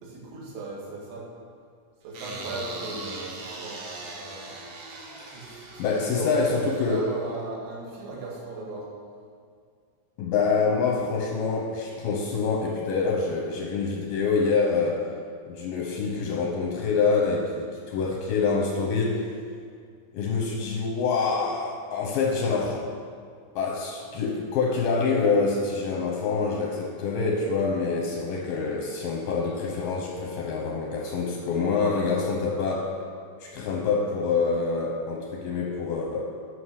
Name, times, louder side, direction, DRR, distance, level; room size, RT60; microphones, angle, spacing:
voice 1, 0.0-1.3 2.0-4.6 5.3-8.9, right 2 dB, 85° right, -4 dB, 4.1 m, -37 dB
sound 1, 2.1-7.5, right 3 dB, 65° right, 2.3 m, -40 dB
voice 2, 5.2-5.5 5.8-7.1 10.2-15.1 15.5-19.2 20.1-22.8 23.6-33.0 33.4-36.3, left 4 dB, 80° left, 0 dB, 2.0 m, -26 dB
9.6 x 5.8 x 6.5 m, 2.2 s
omnidirectional pair, 5.1 m